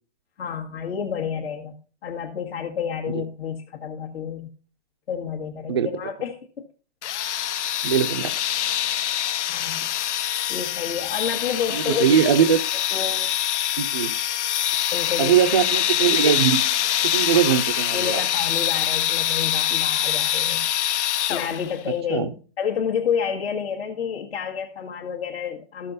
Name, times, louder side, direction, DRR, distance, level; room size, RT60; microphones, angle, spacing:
voice 1, 0.4-1.7 2.0-4.5 5.1-6.7 9.5-9.9 10.5-12.0 12.9-13.3 14.9-15.4 17.3-17.6 17.9-20.7 21.3-22.3 22.6-25.9, left 7 dB, 65° left, -2 dB, 1.7 m, -29 dB
sound 1, 7.0-21.8, left 11 dB, 85° left, 0.6 m, -24 dB
voice 2, 7.8-8.3 11.7-12.6 13.8-14.1 15.2-16.7 17.0-18.2 22.1-22.3, right 8 dB, 25° right, 10 dB, 0.4 m, -21 dB
13.5 x 6.7 x 4.0 m, 0.39 s
hypercardioid pair, 165°, 34 cm